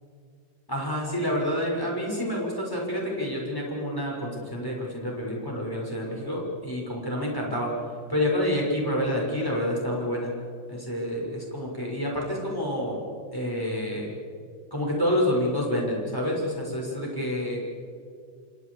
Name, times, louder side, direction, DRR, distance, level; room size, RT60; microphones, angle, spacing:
voice 1, 0.7-7.7 8.1-10.3 10.7-13.0 13.3-14.1 14.7-17.6, left 1 dB, 5° left, -3 dB, 5.9 m, -28 dB
29.5 x 27.5 x 5.0 m, 2.3 s
omnidirectional pair, 5.0 m